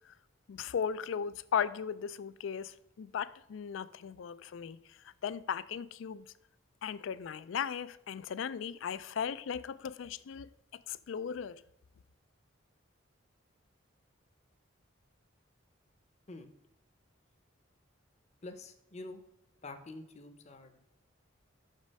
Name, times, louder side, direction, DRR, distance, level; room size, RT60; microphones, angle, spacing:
voice 1, 0.5-4.8 5.2-6.2 6.8-10.5 10.9-11.6, left 7 dB, 70° left, 0.3 m, -37 dB
voice 2, 18.4-19.2 19.6-20.8, left 2 dB, 35° left, 0.7 m, -47 dB
6.2 x 5.3 x 5.3 m
head